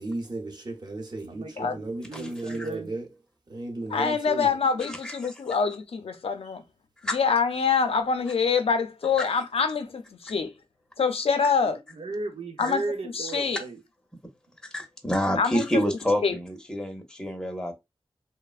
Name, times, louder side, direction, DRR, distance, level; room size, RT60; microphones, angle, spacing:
voice 1, 0.0-3.1 3.5-4.6, right 2 dB, 45° right, 0.8 m, -35 dB
voice 2, 1.3-2.9 11.6-13.8, right 3 dB, 85° right, 0.5 m, -36 dB
voice 3, 2.1-2.7 4.9-5.2 7.0-7.2 9.2-9.3 12.6-12.7 14.7-17.7, equal, 5° left, 0.6 m, -28 dB
voice 4, 3.9-6.6 7.1-10.5 11.0-11.8 12.6-12.8 13.1-13.6 15.4-15.8 16.2-16.3, left 5 dB, 85° left, 0.5 m, -25 dB
3.2 x 2.0 x 2.3 m
wide cardioid pair, 90°, 10 cm